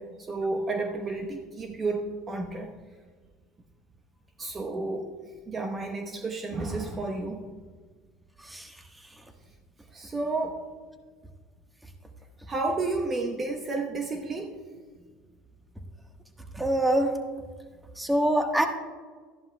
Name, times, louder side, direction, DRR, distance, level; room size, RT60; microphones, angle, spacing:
voice 1, 0.0-2.7 4.4-5.1 5.5-7.5 9.9-10.6 12.5-14.5, right 3 dB, 30° right, 3 dB, 1.0 m, -31 dB
voice 2, 16.5-17.1 18.0-18.7, right 1 dB, 10° right, 4 dB, 1.4 m, -24 dB
13.5 x 11.0 x 2.3 m, 1.5 s
hypercardioid pair, 85°, 0 cm